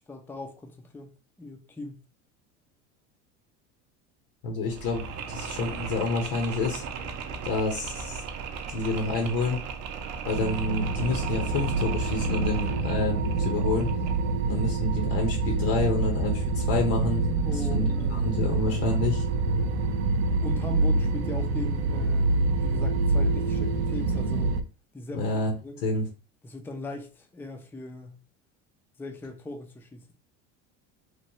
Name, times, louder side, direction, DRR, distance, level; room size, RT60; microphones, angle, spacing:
voice 1, 0.1-1.1 1.4-2.0 17.4-18.3 20.4-24.6 24.9-25.8 26.4-28.2 29.0-30.1, left 2 dB, 5° left, 0.4 m, -39 dB
voice 2, 4.4-6.8 7.4-8.1 8.7-9.6 10.3-13.9 14.4-17.2 17.7-19.2 25.1-25.5 25.8-26.0, left 3 dB, 70° left, 1.0 m, -28 dB
Mechanisms, 4.7-14.4, right 6 dB, 45° right, 0.6 m, -37 dB
sound 1, 10.3-24.6, right 3 dB, 85° right, 0.5 m, -26 dB
3.1 x 2.3 x 2.7 m
supercardioid pair, 105°, 36 cm